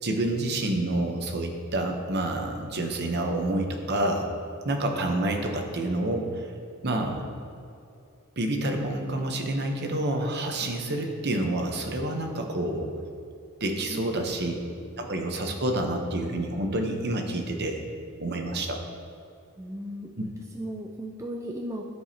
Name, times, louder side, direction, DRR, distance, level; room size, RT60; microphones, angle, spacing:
voice 1, 0.0-4.3 4.6-6.5 6.8-7.2 8.4-12.9 13.6-14.6 15.0-17.8 18.2-18.8, right 1 dB, 45° right, 3 dB, 0.8 m, -28 dB
voice 2, 6.8-7.4 13.9-14.1 19.6-21.8, right 1 dB, 15° right, 0 dB, 0.3 m, -37 dB
13.0 x 4.7 x 2.8 m, 2.6 s
head